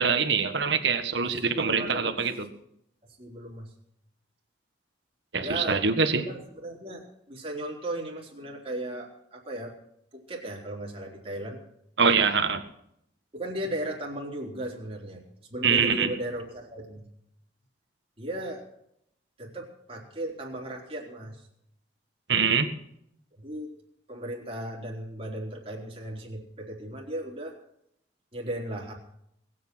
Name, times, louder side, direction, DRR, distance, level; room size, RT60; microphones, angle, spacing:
voice 1, 0.0-2.3 5.3-6.3 12.0-12.6 15.6-16.1 22.3-22.7, right 5 dB, 70° right, 7 dB, 1.6 m, -24 dB
voice 2, 1.2-2.2 3.2-3.7 5.4-5.8 6.3-9.7 10.3-11.6 13.3-15.2 15.5-17.0 18.2-18.6 19.4-21.5 23.4-23.7 24.1-27.5 28.3-28.9, right 1 dB, 30° right, -1 dB, 3.8 m, -36 dB
20.5 x 8.6 x 6.3 m, 0.73 s
head